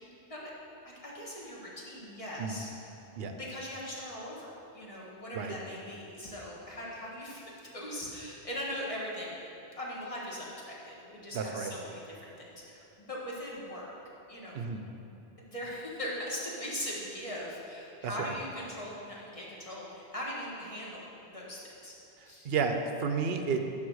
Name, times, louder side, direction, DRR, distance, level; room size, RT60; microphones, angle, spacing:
voice 1, 0.8-2.9 3.2-9.3 9.8-13.9 14.3-14.6 15.4-21.9 22.2-22.5, equal, 30° left, -5 dB, 1.6 m, -40 dB
voice 2, 11.3-11.7 14.5-14.8 18.0-18.3 22.4-23.7, right 5 dB, 65° right, 5 dB, 0.9 m, -31 dB
11.0 x 3.9 x 6.3 m, 2.7 s
omnidirectional pair, 1.1 m